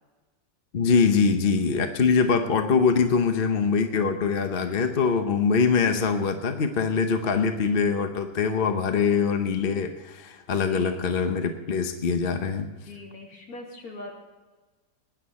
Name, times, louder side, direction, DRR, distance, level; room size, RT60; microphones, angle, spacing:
voice 1, 0.7-12.7, left 5 dB, 40° left, 6 dB, 0.9 m, -23 dB
voice 2, 4.6-5.1 7.1-7.5 10.5-11.1 12.7-14.1, left 2 dB, 60° left, -1 dB, 3.1 m, -43 dB
19.5 x 10.5 x 4.2 m, 1.3 s
omnidirectional pair, 1.8 m